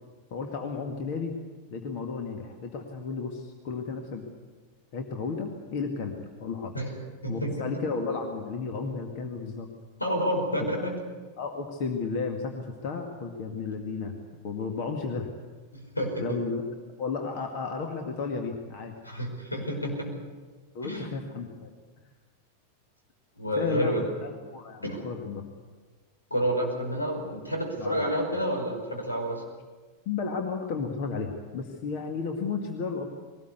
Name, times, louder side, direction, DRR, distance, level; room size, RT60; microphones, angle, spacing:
voice 1, 0.3-1.4 1.7-4.3 4.9-6.7 7.3-9.7 11.4-14.2 14.4-15.3 16.2-16.6 17.0-18.9 20.7-21.7 23.6-25.4 27.8-28.1 30.1-33.1, left 4 dB, 45° left, 4 dB, 2.0 m, -33 dB
voice 2, 7.2-7.7 10.0-10.9 15.7-16.4 19.0-20.1 20.8-21.1 23.4-24.1 24.8-25.0 26.3-29.4, equal, 85° left, 1 dB, 5.3 m, -29 dB
21.5 x 19.0 x 8.3 m, 1.4 s
figure-of-eight pair, 90°, 0 cm